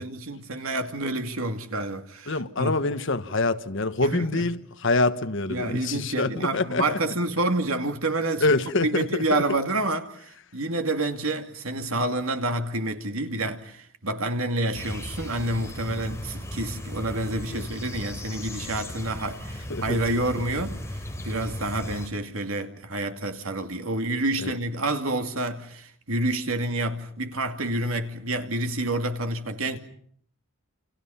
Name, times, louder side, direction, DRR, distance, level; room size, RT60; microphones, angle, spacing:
voice 1, 0.0-2.7 4.1-4.4 5.5-8.5 8.8-20.8 21.2-29.8, right 2 dB, 75° right, 2.6 m, -28 dB
voice 2, 2.3-7.0 8.4-9.2 17.5-17.7 19.7-20.0 24.4-24.5, left 2 dB, 60° left, 1.4 m, -25 dB
sound 1, 14.7-22.1, left 1 dB, 15° left, 3.4 m, -36 dB
29.5 x 28.0 x 5.8 m
head